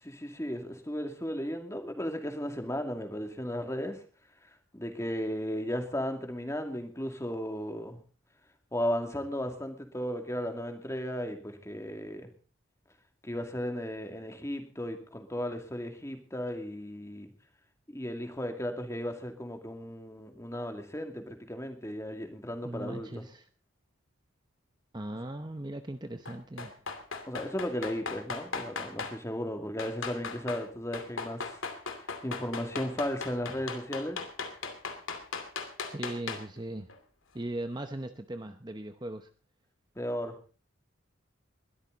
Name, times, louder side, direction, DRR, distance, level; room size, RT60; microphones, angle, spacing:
voice 1, 0.0-4.0 4.7-8.0 8.7-12.3 13.2-17.3 17.9-23.3 27.3-31.6 32.0-34.2 40.0-40.3, equal, 15° left, 5 dB, 2.4 m, -35 dB
voice 2, 22.6-23.5 24.9-26.8 35.9-36.9 37.3-39.3, right 1 dB, 20° right, 8 dB, 0.8 m, -38 dB
sound 1, 26.2-29.1 29.8-30.7 30.9-36.6 36.9-37.0, left 4 dB, 70° left, 2.6 m, -37 dB
21.5 x 13.0 x 4.0 m, 0.38 s
head